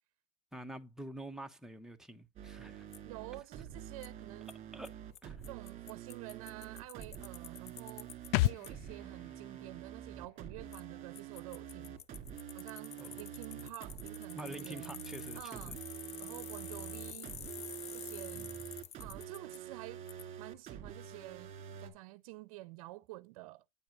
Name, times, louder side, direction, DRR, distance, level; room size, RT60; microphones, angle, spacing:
voice 1, 0.5-2.9 4.7-4.9 5.2-5.4 13.0-13.7 14.3-15.8 18.3-18.6, right 1 dB, 5° right, 1.0 m, -47 dB
sound 1, 2.4-21.9, right 9 dB, 40° right, 2.2 m, -47 dB
Bicycle, 2.9-3.0 4.0-4.1 4.5-4.6 4.8-4.9 5.1-5.2 5.4-8.3 8.6-8.7 10.7-10.8 11.1-19.6 20.1-20.2, left 9 dB, 35° left, 0.8 m, -48 dB
voice 2, 3.0-4.5 5.5-12.0 12.5-15.0 15.3-15.8 16.2-17.4 17.9-18.5 19.0-20.0 20.4-21.5 21.8-23.6, right 19 dB, 85° right, 0.5 m, -49 dB
sound 2, 8.3-11.9 12.1-12.2, left 17 dB, 65° left, 0.4 m, -37 dB
9.4 x 4.3 x 5.2 m
supercardioid pair, 120°, 18 cm